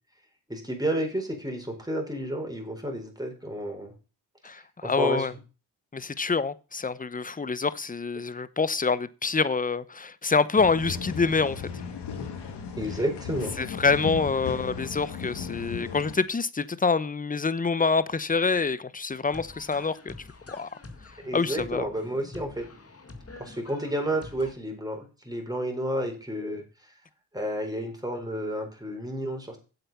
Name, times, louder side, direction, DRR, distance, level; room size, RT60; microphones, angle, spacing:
voice 1, 0.5-3.9 4.8-5.3 12.8-13.6 21.2-22.7 23.4-26.6 27.3-29.6, right 1 dB, 10° right, 4.3 m, -31 dB
voice 2, 4.4-5.3 5.9-11.7 13.6-20.1 20.5-20.7 21.3-21.9, left 4 dB, 20° left, 0.8 m, -26 dB
sound 1, 10.6-16.1, left 6 dB, 85° left, 1.6 m, -36 dB
sound 2, 19.3-24.5, left 2 dB, 35° left, 1.9 m, -46 dB
8.1 x 7.8 x 5.5 m
supercardioid pair, 50°, 40 cm